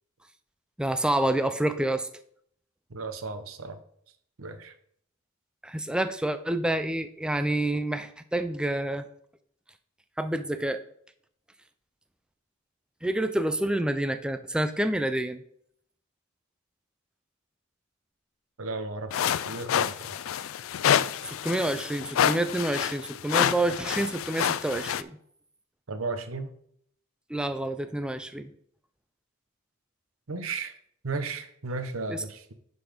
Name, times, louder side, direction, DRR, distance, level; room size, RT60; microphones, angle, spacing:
voice 1, 0.8-2.1 5.6-9.1 10.2-10.8 13.0-15.4 21.2-25.2 27.3-28.5 32.1-32.2, right 1 dB, 5° right, 10 dB, 0.4 m, -28 dB
voice 2, 2.9-3.8 4.4-4.7 18.6-20.1 25.9-26.5 30.3-30.8 31.0-32.5, right 3 dB, 85° right, 10 dB, 0.9 m, -35 dB
sound 1, 19.1-25.0, left 9 dB, 70° left, 0.4 m, -28 dB
10.0 x 4.1 x 5.0 m, 0.67 s
head